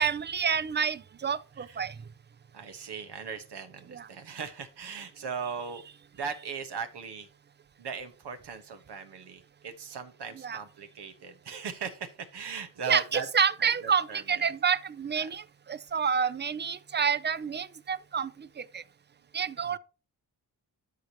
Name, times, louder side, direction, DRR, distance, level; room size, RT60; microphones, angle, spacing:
voice 1, 0.0-2.0 3.9-4.1 10.4-10.6 12.9-18.8 19.3-19.8, right 6 dB, 25° right, 0.5 m, -29 dB
voice 2, 2.5-5.8 6.1-7.3 7.8-13.3 13.6-14.5 15.1-15.3 19.6-19.8, right 6 dB, 80° right, 1.4 m, -39 dB
12.5 x 5.1 x 3.0 m
cardioid pair, 90°, 40 cm